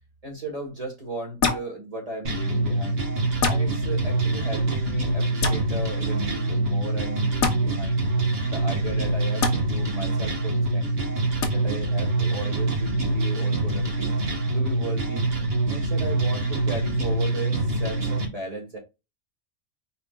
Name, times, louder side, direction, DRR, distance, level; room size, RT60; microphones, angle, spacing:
voice 1, 0.2-3.0 3.5-8.0 8.5-11.1 11.5-14.1 14.5-15.2 15.7-18.8, right 2 dB, 30° right, 1.5 m, -36 dB
sound 1, 1.4-1.7 3.4-3.6 5.4-5.6 7.4-7.6 9.4-9.5 11.4-11.5, left 5 dB, 90° left, 1.6 m, -23 dB
sound 2, 2.2-18.2, right 2 dB, 45° right, 1.5 m, -25 dB
5.2 x 4.2 x 2.4 m
omnidirectional pair, 1.4 m